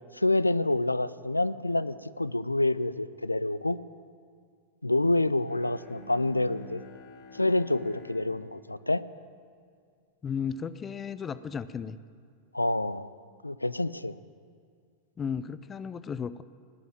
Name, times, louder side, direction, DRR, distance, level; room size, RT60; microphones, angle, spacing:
voice 1, 0.1-3.8 4.8-6.8 7.3-9.0 12.5-13.1 13.4-14.2, left 2 dB, 85° left, 16 dB, 0.4 m, -27 dB
Bowed string instrument, 5.4-10.3, left 1 dB, 45° left, 2.3 m, -50 dB
voice 2, 10.2-12.0 15.2-16.4, left 6 dB, 20° left, 15 dB, 0.5 m, -34 dB
17.5 x 7.1 x 9.3 m, 2.1 s
figure-of-eight pair, 90°, 0 cm